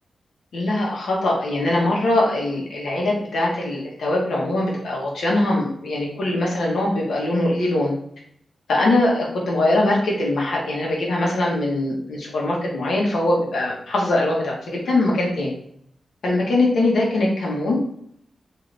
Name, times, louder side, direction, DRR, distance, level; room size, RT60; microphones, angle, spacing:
voice 1, 0.5-7.9 8.7-15.5 16.2-17.8, left 2 dB, 85° left, -3 dB, 1.2 m, -22 dB
3.8 x 2.8 x 3.3 m, 0.70 s
wide cardioid pair, 110°, 0 cm